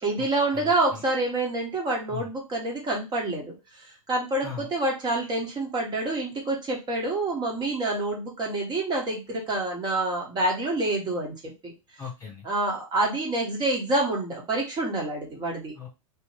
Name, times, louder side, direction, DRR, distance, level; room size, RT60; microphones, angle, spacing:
voice 1, 0.0-11.7 12.4-15.7, right 2 dB, 25° right, -1 dB, 1.5 m, -27 dB
voice 2, 0.5-1.0 2.1-2.3 4.4-4.7 12.0-12.5 15.7-15.9, left 7 dB, 15° left, -1 dB, 1.1 m, -39 dB
3.1 x 3.0 x 3.1 m, 0.26 s
hypercardioid pair, 105°, 18 cm